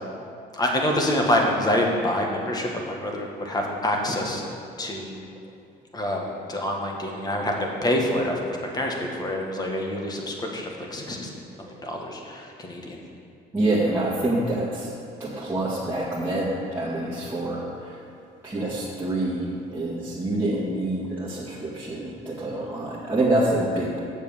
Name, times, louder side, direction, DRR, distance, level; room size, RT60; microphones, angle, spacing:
voice 1, 0.5-4.4 4.8-5.1 5.9-11.3 11.8-13.0, left 1 dB, 25° left, 0 dB, 1.7 m, -26 dB
voice 2, 13.5-14.9 15.2-18.0 18.4-24.0, right 1 dB, 15° right, -9 dB, 1.9 m, -26 dB
7.6 x 7.3 x 7.3 m, 2.5 s
cardioid pair, 110°, 17 cm